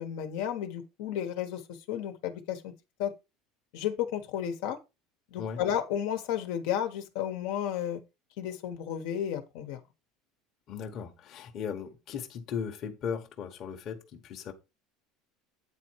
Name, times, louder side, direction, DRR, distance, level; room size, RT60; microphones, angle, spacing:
voice 1, 0.0-1.6 1.9-2.7 3.0-3.1 3.7-4.8 5.3-8.0 8.4-9.8, left 10 dB, 70° left, 1.3 m, -32 dB
voice 2, 10.7-14.5, left 7 dB, 35° left, 1.2 m, -37 dB
9.1 x 4.3 x 4.7 m
cardioid pair, 165°, 0 cm